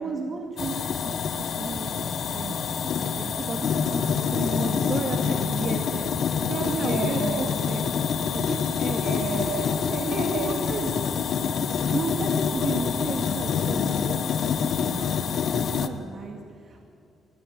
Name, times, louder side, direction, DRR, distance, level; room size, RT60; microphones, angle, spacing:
voice 1, 0.0-4.0 4.3-7.8 8.3-9.0 10.0-10.9 11.6-14.2 14.9-16.9, right 4 dB, 45° right, 2 dB, 2.2 m, -34 dB
sound 1, 0.6-15.9, left 7 dB, 60° left, 1.5 m, -26 dB
voice 2, 6.7-7.5 8.9-10.6, right 3 dB, 80° right, 3 dB, 6.6 m, -31 dB
25.5 x 16.0 x 9.3 m, 2.6 s
cardioid pair, 90°, 0 cm